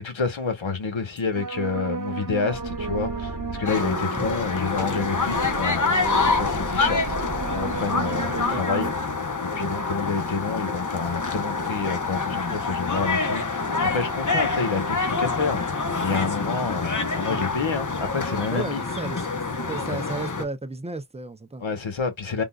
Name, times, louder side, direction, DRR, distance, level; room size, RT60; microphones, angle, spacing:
voice 1, 0.0-7.2 7.5-8.9 9.4-13.6 13.9-18.8 21.6-22.4, left 4 dB, 65° left, 1.2 m, -29 dB
sound 1, 1.2-8.9, right 4 dB, 40° right, 0.9 m, -33 dB
sound 2, 3.7-20.4, left 4 dB, 35° left, 1.0 m, -26 dB
voice 2, 18.5-19.2 19.7-21.6, right 3 dB, 15° right, 0.5 m, -33 dB
3.7 x 2.4 x 2.4 m
wide cardioid pair, 50°, 50 cm